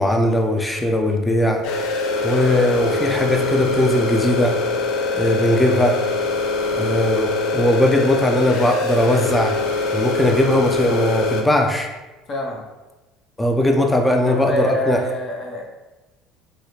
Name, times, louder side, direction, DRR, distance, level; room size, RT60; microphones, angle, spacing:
voice 1, 0.0-1.7 2.2-4.6 5.1-6.0 6.7-9.6 9.9-11.9 13.4-15.0, left 1 dB, 10° left, 3 dB, 0.4 m, -19 dB
sound 1, 1.6-11.4, left 3 dB, 70° left, 0.4 m, -23 dB
voice 2, 12.3-12.6 14.2-15.6, left 1 dB, 40° left, 0 dB, 0.7 m, -27 dB
3.2 x 2.4 x 2.8 m, 1.1 s
supercardioid pair, 110°, 0 cm